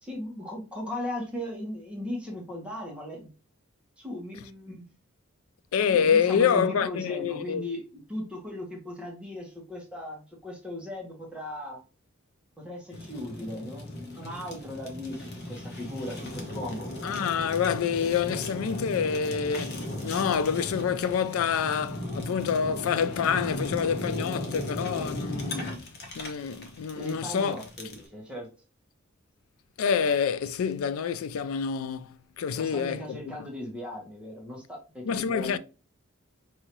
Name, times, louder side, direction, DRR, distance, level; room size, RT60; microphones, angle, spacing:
voice 1, 0.0-3.3 4.0-4.8 5.9-11.8 12.6-16.9 26.9-28.5 32.5-35.6, left 1 dB, 5° right, 1.2 m, -37 dB
voice 2, 5.7-7.6 17.0-25.9 26.2-27.6 29.8-32.1 32.4-33.5 35.1-35.6, left 7 dB, 90° left, 0.4 m, -27 dB
Fire, 12.9-28.1, left 1 dB, 55° left, 1.0 m, -37 dB
4.8 x 2.7 x 3.0 m
head